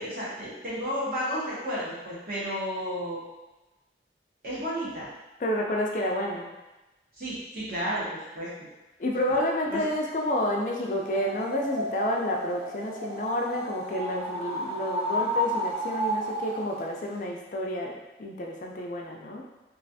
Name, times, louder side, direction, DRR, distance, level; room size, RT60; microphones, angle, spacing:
voice 1, 0.0-3.2 4.4-5.1 7.2-8.5 9.7-9.8, equal, 50° right, -7 dB, 1.0 m, -32 dB
voice 2, 5.4-6.5 9.0-19.4, left 1 dB, 45° left, 0 dB, 0.3 m, -30 dB
sound 1, 11.0-16.8, equal, 35° right, 0.6 m, -32 dB
3.1 x 2.4 x 2.7 m, 1.1 s
head